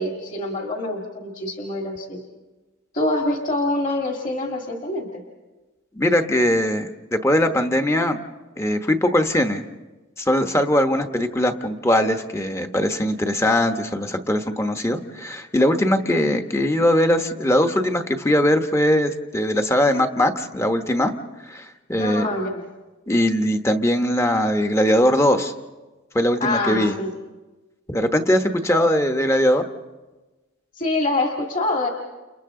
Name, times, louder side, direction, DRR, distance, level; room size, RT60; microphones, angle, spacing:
voice 1, 0.0-2.3 2.9-5.2 22.0-22.6 26.4-27.1 30.8-31.9, left 2 dB, 40° left, 1 dB, 2.1 m, -25 dB
voice 2, 6.0-8.2 8.6-9.6 10.2-21.1 21.5-22.3 23.1-25.5 26.1-27.0 27.9-29.6, left 1 dB, 15° left, 6 dB, 1.0 m, -20 dB
30.0 x 30.0 x 3.8 m, 1.2 s
head